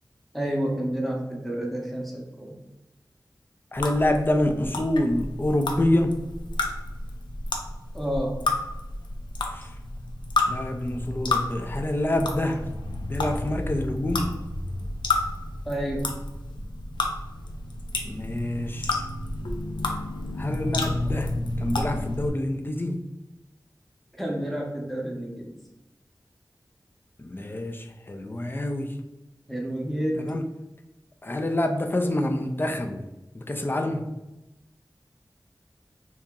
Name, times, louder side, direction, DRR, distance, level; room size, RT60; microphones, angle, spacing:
voice 1, 0.3-2.6 7.9-8.4 15.6-16.1 24.1-25.6 29.5-30.3, right 1 dB, ahead, -2 dB, 0.8 m, -29 dB
sound 1, 3.7-22.3, left 2 dB, 90° left, 0.4 m, -31 dB
voice 2, 3.7-6.2 9.5-9.8 10.5-12.7 13.1-14.3 18.0-19.0 20.4-23.0 27.2-29.0 30.2-30.4 31.2-33.1 33.3-34.0, left 1 dB, 30° left, 5 dB, 0.4 m, -27 dB
2.8 x 2.7 x 3.6 m, 0.97 s
wide cardioid pair, 50°, 8 cm